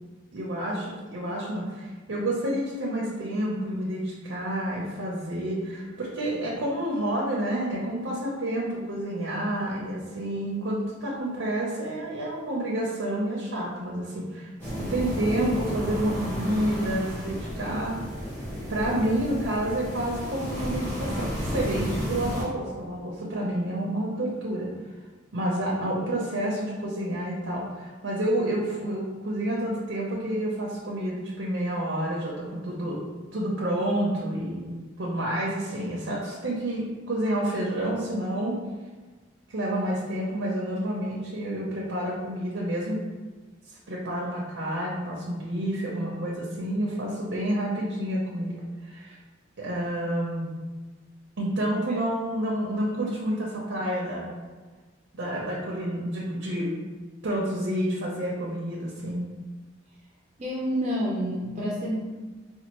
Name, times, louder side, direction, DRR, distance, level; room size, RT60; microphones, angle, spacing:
voice 1, 0.3-18.0 18.7-24.7 25.3-33.0 33.3-38.6 39.5-43.0 43.7-49.2 49.6-50.4 51.4-54.3 55.2-56.8 57.2-59.3, right 1 dB, 75° right, -4 dB, 0.7 m, -29 dB
sound 1, 14.6-22.4, equal, 10° left, 0.9 m, -32 dB
voice 2, 60.4-62.0, equal, 35° right, -5 dB, 0.5 m, -28 dB
4.3 x 2.3 x 3.0 m, 1.3 s
head